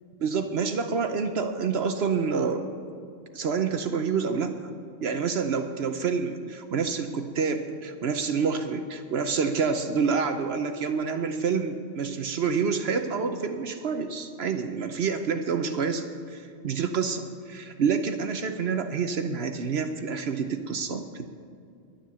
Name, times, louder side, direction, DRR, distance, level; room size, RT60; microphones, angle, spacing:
voice 1, 0.2-2.6 3.3-4.7 5.0-21.3, right 5 dB, 65° right, 7 dB, 1.0 m, -28 dB
11.5 x 10.5 x 6.9 m, 2.4 s
omnidirectional pair, 1.2 m